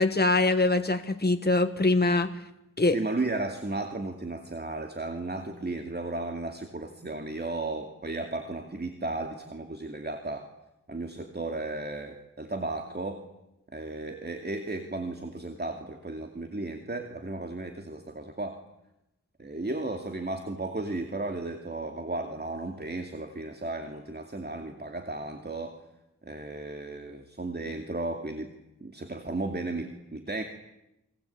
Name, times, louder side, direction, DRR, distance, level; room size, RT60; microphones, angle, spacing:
voice 1, 0.0-2.3 2.8-3.0, left 2 dB, 30° left, 7 dB, 1.6 m, -23 dB
voice 2, 2.9-10.5 10.9-13.2 13.7-18.6 19.4-25.8 26.2-28.5 28.8-30.4, right 2 dB, 30° right, 6 dB, 2.4 m, -34 dB
29.5 x 23.0 x 8.6 m, 0.90 s
wide cardioid pair, 75°, 31 cm